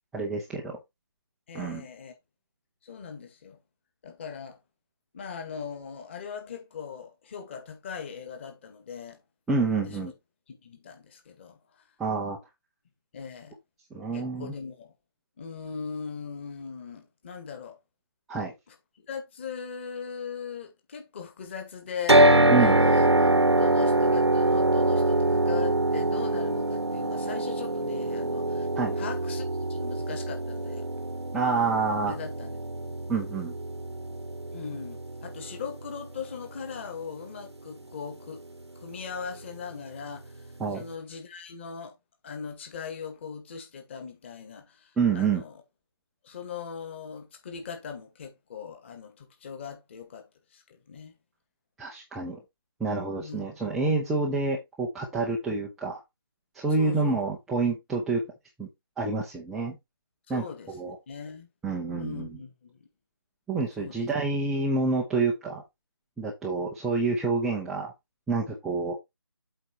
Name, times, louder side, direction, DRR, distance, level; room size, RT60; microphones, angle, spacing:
voice 1, 0.1-0.8 1.5-1.8 9.5-10.1 12.0-12.4 13.9-14.5 18.3-18.5 22.5-22.8 28.7-29.0 31.3-32.1 33.1-33.5 40.6-40.9 45.0-45.4 51.8-52.4 52.8-56.0 56.5-58.2 58.6-58.7 59.0-59.8 60.3-61.0 61.6-62.4 63.5-65.6 66.2-67.9 68.3-69.0, right 4 dB, ahead, 0.5 m, -28 dB
voice 2, 1.5-2.1 2.8-3.6 4.0-4.6 5.1-9.2 9.9-10.1 10.5-11.9 13.1-13.6 14.1-14.9 15.4-17.8 18.7-18.8 19.1-23.1 23.4-28.7 29.0-29.4 29.7-30.9 32.1-32.6 34.5-38.4 38.8-41.9 42.2-45.6 46.2-51.1 53.2-53.8 56.7-57.2 60.3-61.5 61.9-62.9 63.8-64.0, left 6 dB, 25° left, 2.0 m, -40 dB
sound 1, 22.1-36.2, right 1 dB, 90° right, 1.2 m, -24 dB
8.0 x 4.4 x 4.4 m
figure-of-eight pair, 155°, 14 cm